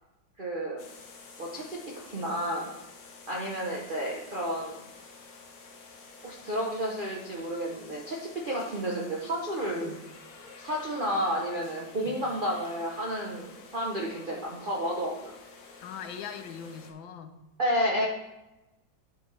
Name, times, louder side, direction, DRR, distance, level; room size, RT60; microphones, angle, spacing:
voice 1, 0.4-0.8 1.4-2.7 3.3-4.8 6.2-9.9 10.6-15.3 17.6-18.1, equal, 45° right, -2 dB, 0.7 m, -31 dB
sound 1, 0.8-16.9, left 4 dB, 55° left, 1.3 m, -50 dB
voice 2, 9.7-10.0 12.1-12.2 15.8-17.4, left 7 dB, 80° left, 8 dB, 1.4 m, -41 dB
10.5 x 4.9 x 3.3 m, 1.0 s
omnidirectional pair, 2.1 m